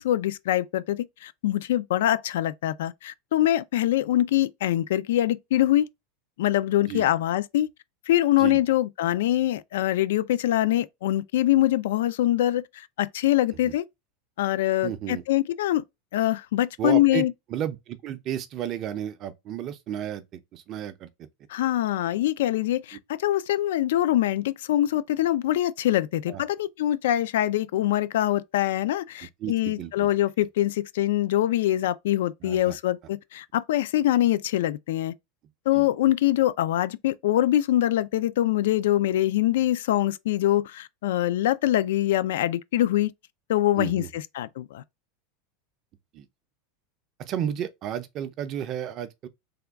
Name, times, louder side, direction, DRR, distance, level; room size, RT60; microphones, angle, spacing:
voice 1, 0.0-5.9 6.4-7.7 8.1-13.8 14.4-15.8 16.1-17.3 21.5-35.1 35.7-43.1 43.5-44.8, left 13 dB, 85° left, 0.3 m, -24 dB
voice 2, 14.8-15.2 16.8-17.3 17.5-21.1 26.3-26.4 29.4-29.9 32.4-32.8 35.7-35.9 43.8-44.1 46.1-46.3 47.2-49.3, right 10 dB, 30° right, 0.4 m, -32 dB
3.4 x 2.2 x 3.4 m
supercardioid pair, 165°, 0 cm